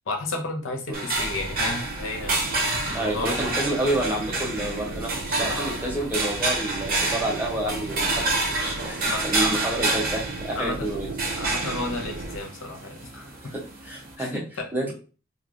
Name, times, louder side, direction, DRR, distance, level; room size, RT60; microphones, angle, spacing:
voice 1, 0.1-2.4 2.9-3.3 9.1-9.6 10.5-10.8 11.3-13.3 14.2-14.9, left 2 dB, 65° left, 2 dB, 0.6 m, -32 dB
sound 1, 0.9-14.2, right 2 dB, 45° right, 0.8 m, -29 dB
sound 2, 1.1-12.4, right 3 dB, 70° right, 0.4 m, -37 dB
voice 2, 2.9-8.3 8.6-11.1 13.4-14.4 14.7-14.9, right 1 dB, 10° right, -2 dB, 0.6 m, -29 dB
3.0 x 2.4 x 2.4 m, 0.34 s
head